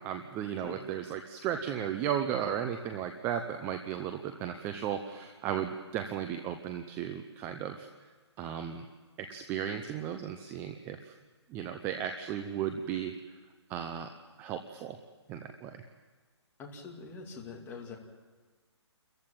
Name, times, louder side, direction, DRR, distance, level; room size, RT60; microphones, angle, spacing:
voice 1, 0.0-8.1 8.4-8.9 9.2-11.1 11.5-13.2 13.7-14.1 14.4-15.0 15.3-15.8, right 9 dB, 15° right, 7 dB, 0.7 m, -35 dB
voice 2, 16.6-18.0, left 4 dB, 15° left, 0 dB, 2.6 m, -44 dB
28.5 x 14.5 x 8.9 m, 1.4 s
hypercardioid pair, 160°, 15 cm